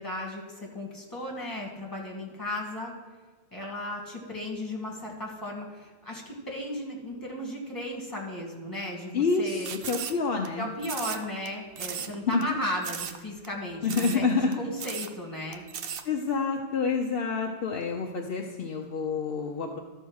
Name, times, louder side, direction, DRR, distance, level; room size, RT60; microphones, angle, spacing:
voice 1, 0.0-3.0 3.5-9.7 10.6-15.6, left 1 dB, 20° left, -2 dB, 2.0 m, -35 dB
voice 2, 9.1-10.7 12.3-12.4 13.8-14.6 16.0-19.8, left 4 dB, 60° left, 1 dB, 0.9 m, -28 dB
sound 1, 9.6-10.5 10.8-11.5 11.8-12.1 12.4-12.5 12.8-13.2 13.4-13.5 13.8-14.2 14.5-14.6 14.8-15.1 15.5-16.0, right 8 dB, 65° right, 0.8 m, -36 dB
13.0 x 4.6 x 6.3 m, 1.4 s
omnidirectional pair, 1.1 m